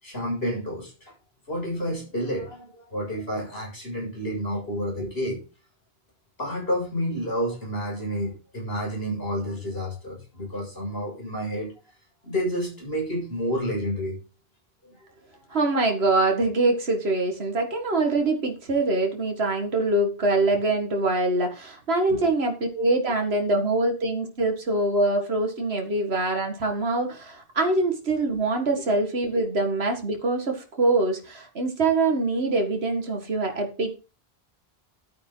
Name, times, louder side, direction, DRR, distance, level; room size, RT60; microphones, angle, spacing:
voice 1, 0.0-0.9 1.5-5.4 6.4-11.7 12.2-14.2 14.8-15.1 15.5-15.6 22.1-22.2, equal, 75° left, 7.4 m, -30 dB
voice 2, 15.5-34.0, right 2 dB, 85° right, 2.2 m, -24 dB
12.0 x 9.4 x 4.0 m
omnidirectional pair, 1.0 m